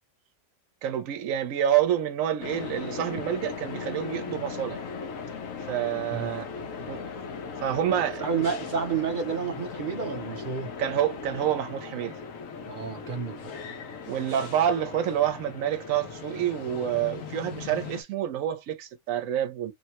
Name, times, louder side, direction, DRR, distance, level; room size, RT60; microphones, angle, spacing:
voice 1, 0.8-4.8 5.7-6.4 6.8-7.1 7.6-8.2 10.8-12.1 14.1-19.7, right 10 dB, 90° right, 1.0 m, -28 dB
sound 1, 2.4-18.0, left 5 dB, 90° left, 1.1 m, -38 dB
voice 2, 6.1-6.5 8.2-10.7 12.6-13.5, right 6 dB, 50° right, 0.7 m, -30 dB
3.0 x 2.1 x 2.8 m
omnidirectional pair, 1.3 m